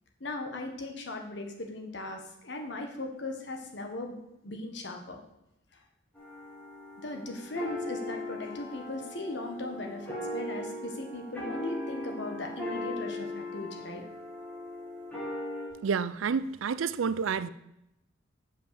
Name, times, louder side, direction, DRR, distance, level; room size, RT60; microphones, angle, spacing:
voice 1, 0.2-4.2 4.4-5.2 7.0-14.0, left 2 dB, 60° left, 1.4 m, -38 dB
sound 1, 6.2-15.7, left 1 dB, 10° left, 2.6 m, -38 dB
voice 2, 15.8-17.5, right 6 dB, 85° right, 0.4 m, -29 dB
7.4 x 5.6 x 6.9 m
head